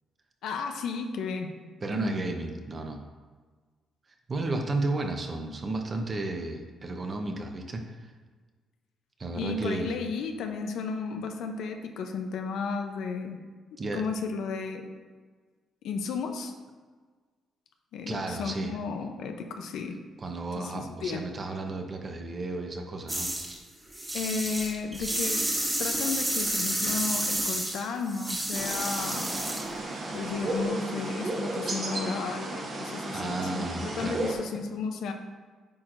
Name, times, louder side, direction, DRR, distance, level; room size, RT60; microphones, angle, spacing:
voice 1, 0.4-1.5 1.9-2.2 9.3-13.4 13.7-14.9 15.8-16.5 17.9-20.0 20.6-21.2 24.1-25.5 25.8-29.3 30.1-35.1, left 5 dB, 80° left, 5 dB, 0.6 m, -33 dB
voice 2, 1.8-3.0 4.3-8.1 9.2-9.9 13.8-14.0 18.1-18.7 20.2-23.3 33.1-34.2, right 2 dB, 35° right, 4 dB, 0.8 m, -33 dB
sound 1, 23.1-23.6 23.9-29.7, right 1 dB, 20° right, 1.3 m, -30 dB
sound 2, 28.5-34.4, right 2 dB, 50° right, 1.3 m, -34 dB
8.6 x 4.4 x 2.6 m, 1.5 s
cardioid pair, 90°, 0 cm